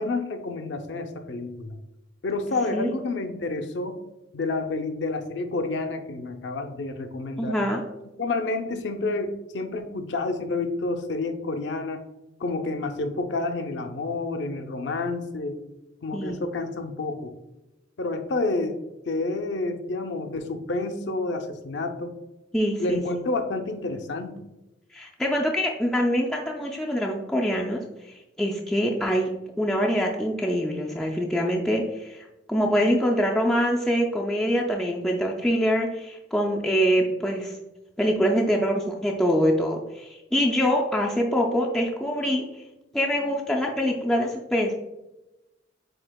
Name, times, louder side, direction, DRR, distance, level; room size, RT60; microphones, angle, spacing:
voice 1, 0.0-1.8 2.2-4.0 4.3-7.6 8.2-12.0 12.4-15.6 16.0-17.3 18.0-18.8 19.1-22.1 22.8-24.3, left 3 dB, 70° left, 6 dB, 0.5 m, -29 dB
voice 2, 7.4-7.8 16.1-16.4 22.5-23.0 24.9-29.3 29.6-37.6 38.0-42.4 42.9-44.7, equal, 5° left, -2 dB, 0.3 m, -24 dB
7.6 x 2.8 x 2.2 m, 0.98 s
head